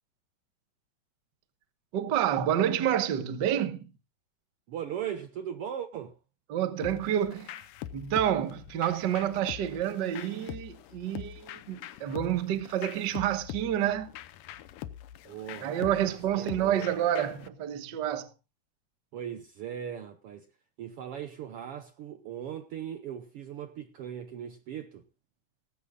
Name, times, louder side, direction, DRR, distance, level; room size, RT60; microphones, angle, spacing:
voice 1, 1.9-3.8 6.5-7.6 7.9-14.1 15.6-18.3, right 10 dB, 55° right, 1.2 m, -29 dB
voice 2, 4.7-6.2 15.2-16.9 19.1-20.5 20.8-25.0, right 9 dB, 75° right, 1.3 m, -39 dB
sound 1, 6.8-17.5, left 12 dB, 80° left, 2.3 m, -43 dB
18.0 x 15.0 x 2.4 m
omnidirectional pair, 3.7 m